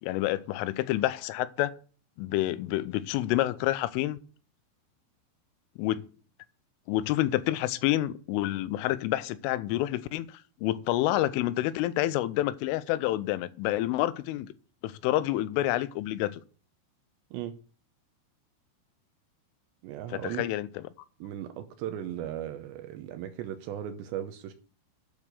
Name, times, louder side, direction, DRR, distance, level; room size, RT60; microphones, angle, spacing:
voice 1, 0.0-1.7 2.2-4.2 5.8-6.1 6.9-14.5 14.8-16.4 20.1-20.7, left 15 dB, 85° left, 3.2 m, -28 dB
voice 2, 19.8-20.4 21.2-24.5, right 11 dB, 80° right, 2.7 m, -37 dB
10.5 x 6.4 x 6.7 m
omnidirectional pair, 5.6 m